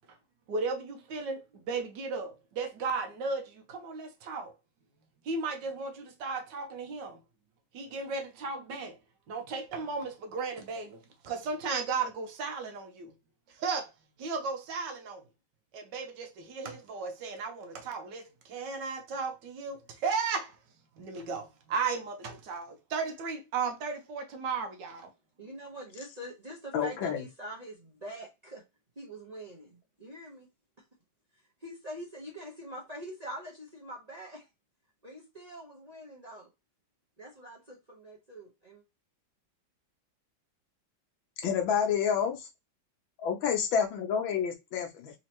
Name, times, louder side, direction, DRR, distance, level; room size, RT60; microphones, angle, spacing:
voice 1, 0.5-4.5 5.2-7.2 7.7-9.0 9.3-13.1 13.5-13.9 14.2-15.2 15.7-20.6 21.0-25.1, right 4 dB, 70° right, 1.3 m, -35 dB
voice 2, 25.4-28.6 29.0-30.5 31.6-34.4 35.0-36.5 37.2-38.8, right 1 dB, 30° right, 0.7 m, -44 dB
voice 3, 26.7-27.2 41.4-42.4 43.2-45.1, left 7 dB, 80° left, 1.7 m, -29 dB
4.2 x 2.8 x 2.9 m
omnidirectional pair, 2.1 m